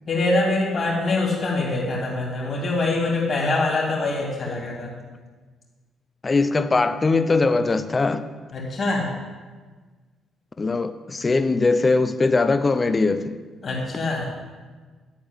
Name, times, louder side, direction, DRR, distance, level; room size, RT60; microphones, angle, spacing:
voice 1, 0.1-4.9 8.5-9.1 13.6-14.3, left 2 dB, 50° left, -4 dB, 3.0 m, -24 dB
voice 2, 6.2-8.2 10.6-13.4, left 3 dB, 30° left, 10 dB, 0.6 m, -21 dB
11.5 x 4.7 x 7.9 m, 1.4 s
cardioid pair, 90°, 0 cm